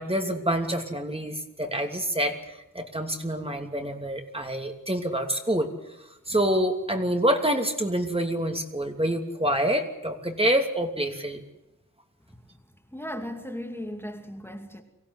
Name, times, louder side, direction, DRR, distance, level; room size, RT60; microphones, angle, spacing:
voice 1, 0.0-5.7 6.3-11.4, right 1 dB, 15° right, 4 dB, 2.8 m, -27 dB
voice 2, 12.9-14.8, equal, 5° left, 3 dB, 2.5 m, -36 dB
23.5 x 15.5 x 9.8 m, 0.93 s
cardioid pair, 65°, 33 cm